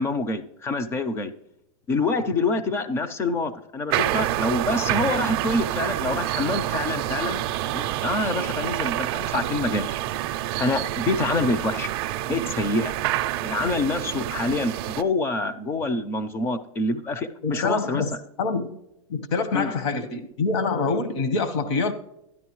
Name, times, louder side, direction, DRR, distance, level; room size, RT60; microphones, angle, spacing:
voice 1, 0.0-1.3 1.9-7.4 7.7-10.0 10.6-11.9 12.3-12.9 13.4-18.0 19.5-19.7, left 2 dB, 15° left, 0.4 m, -26 dB
sound 1, 3.9-15.0, right 14 dB, 45° right, 0.4 m, -28 dB
voice 2, 17.4-18.7 19.1-21.9, left 4 dB, 50° left, 1.1 m, -25 dB
12.0 x 10.0 x 3.1 m
supercardioid pair, 155°, 18 cm